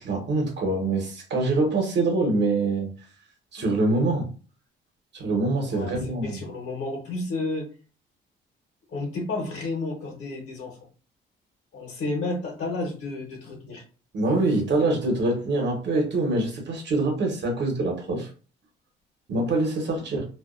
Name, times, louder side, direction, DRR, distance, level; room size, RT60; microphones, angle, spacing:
voice 1, 0.0-2.9 3.5-4.3 5.1-6.4 14.1-18.3 19.3-20.2, right 2 dB, 60° right, 1.0 m, -24 dB
voice 2, 5.6-7.7 8.9-10.8 11.7-13.8 20.0-20.1, left 2 dB, 65° left, 0.9 m, -31 dB
2.4 x 2.2 x 2.4 m
cardioid pair, 90°, 20 cm